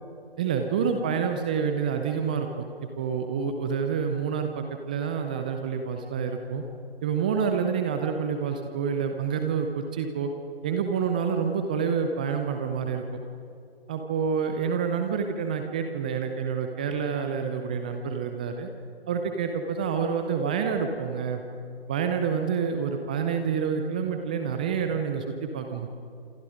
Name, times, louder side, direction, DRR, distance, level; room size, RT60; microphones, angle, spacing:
voice 1, 0.4-6.6 7.0-10.3 10.6-13.2 13.9-18.7 19.1-21.4 21.9-25.9, right 6 dB, 10° right, 5 dB, 0.5 m, -28 dB
28.0 x 27.0 x 5.1 m, 2.4 s
figure-of-eight pair, 140°, 31 cm